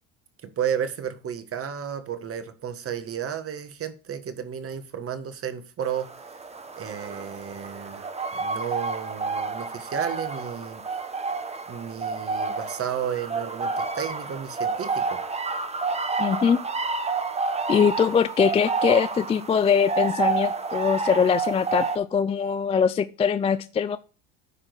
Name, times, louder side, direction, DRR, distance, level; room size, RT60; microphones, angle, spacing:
voice 1, 0.4-6.1 6.8-8.0 8.3-10.8 11.7-15.2, right 8 dB, 35° right, 1.5 m, -32 dB
sound 1, 5.8-22.0, right 4 dB, 15° right, 1.1 m, -30 dB
voice 2, 16.2-16.6 17.7-24.0, left 7 dB, 15° left, 0.3 m, -22 dB
9.8 x 3.7 x 6.5 m
supercardioid pair, 90°, 37 cm